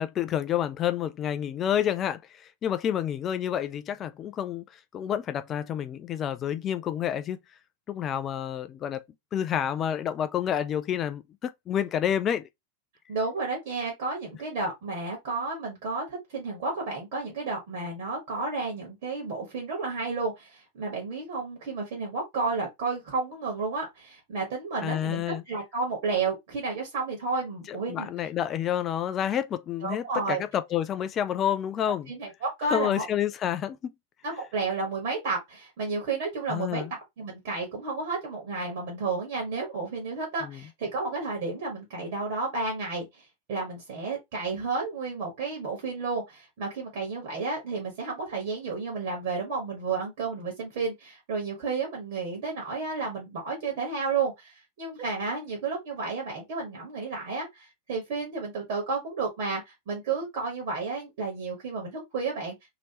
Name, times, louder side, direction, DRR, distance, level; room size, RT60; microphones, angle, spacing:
voice 1, 0.0-4.6 4.9-7.4 7.9-9.0 9.3-12.5 24.8-25.4 27.7-32.1 32.7-33.9 36.5-36.9 40.4-40.6, left 10 dB, 30° left, 0.3 m, -29 dB
voice 2, 13.1-28.1 29.8-30.4 32.1-33.0 34.2-43.2 43.5-62.5, right 4 dB, 55° right, 1.5 m, -32 dB
3.0 x 2.8 x 2.9 m
figure-of-eight pair, 95°, 0 cm